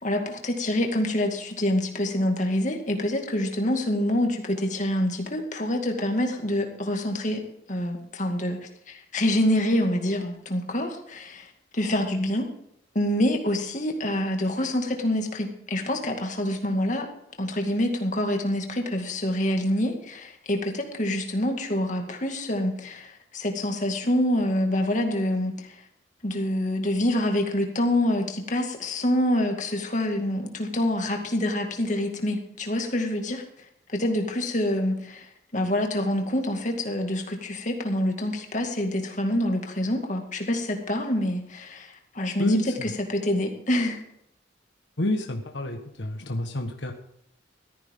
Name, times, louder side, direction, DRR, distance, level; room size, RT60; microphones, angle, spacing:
voice 1, 0.0-7.4 7.7-8.6 8.9-11.5 11.7-12.5 13.0-17.1 17.4-25.5 26.2-33.4 33.9-35.3 35.5-44.0, left 1 dB, 40° left, 3 dB, 2.2 m, -26 dB
voice 2, 42.4-42.9 45.0-46.9, left 1 dB, 70° left, 3 dB, 1.4 m, -28 dB
14.5 x 14.0 x 3.8 m, 0.75 s
head